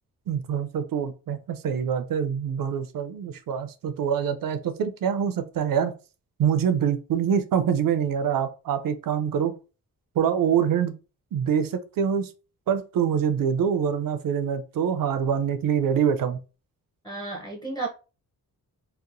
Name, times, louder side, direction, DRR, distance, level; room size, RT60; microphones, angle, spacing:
voice 1, 0.3-5.9 6.4-9.5 10.2-11.0 11.3-12.3 12.7-16.4, right 8 dB, 70° right, 10 dB, 0.5 m, -25 dB
voice 2, 17.0-17.9, right 3 dB, 10° left, -2 dB, 0.6 m, -32 dB
2.9 x 2.1 x 2.5 m, 0.33 s
cardioid pair, 110°, 35 cm